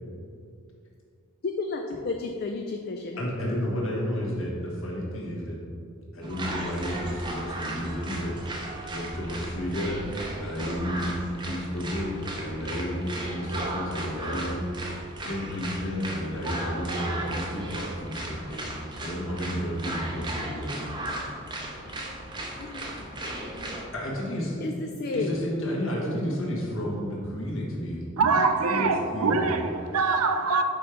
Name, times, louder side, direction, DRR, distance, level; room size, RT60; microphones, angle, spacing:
voice 1, 1.4-3.3 22.6-23.3 24.6-25.4, left 3 dB, 45° left, 0.3 m, -32 dB
voice 2, 3.2-5.6 6.1-11.2 11.4-20.8 23.9-24.6 25.1-28.1 28.7-29.5, equal, 60° left, 1.5 m, -32 dB
sound 1, 6.2-23.8, right 1 dB, 20° right, 0.6 m, -36 dB
voice 3, 28.2-30.6, right 4 dB, 80° right, 0.5 m, -24 dB
5.5 x 5.1 x 4.5 m
head